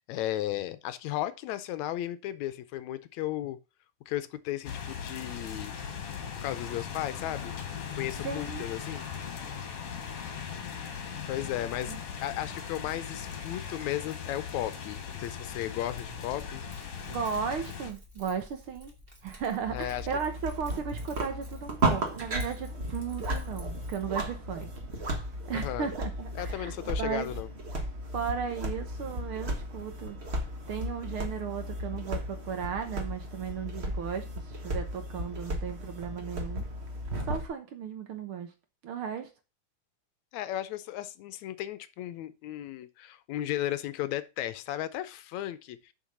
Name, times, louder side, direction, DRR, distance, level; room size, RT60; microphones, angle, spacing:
voice 1, 0.1-3.6 4.1-5.8 6.4-7.5 7.9-9.1 11.3-16.6 19.7-20.1 25.5-25.9 26.4-27.5 40.3-45.9, left 13 dB, 75° left, 1.8 m, -35 dB
sound 1, 4.6-17.9, left 7 dB, 55° left, 2.2 m, -39 dB
voice 2, 8.2-8.6 11.9-12.0 17.1-18.9 19.2-24.7 25.5-26.7 27.0-27.3 28.1-30.2 30.7-36.7 37.2-38.5 38.8-39.3, right 7 dB, 65° right, 1.4 m, -35 dB
Keys jangling, 16.1-24.0, equal, 20° right, 2.3 m, -52 dB
sound 2, 19.6-37.5, right 1 dB, 90° right, 0.5 m, -35 dB
6.9 x 5.8 x 6.0 m
omnidirectional pair, 3.6 m